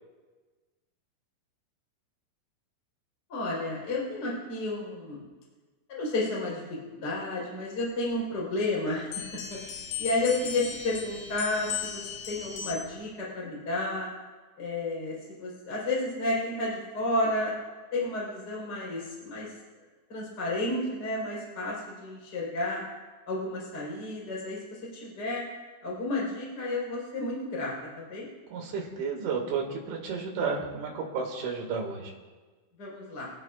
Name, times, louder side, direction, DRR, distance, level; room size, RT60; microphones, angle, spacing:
voice 1, 3.3-5.2 5.9-9.2 9.5-9.6 10.0-14.1 14.6-17.5 17.9-19.5 20.1-22.8 23.3-25.4 25.8-28.3 32.8-33.3, left 2 dB, 20° left, -4 dB, 4.4 m, -31 dB
sound 1, 9.1-13.0, left 8 dB, 85° left, 4.4 m, -37 dB
voice 2, 28.5-32.1, right 5 dB, 70° right, 0 dB, 4.6 m, -32 dB
24.0 x 16.5 x 2.5 m, 1.3 s
omnidirectional pair, 5.7 m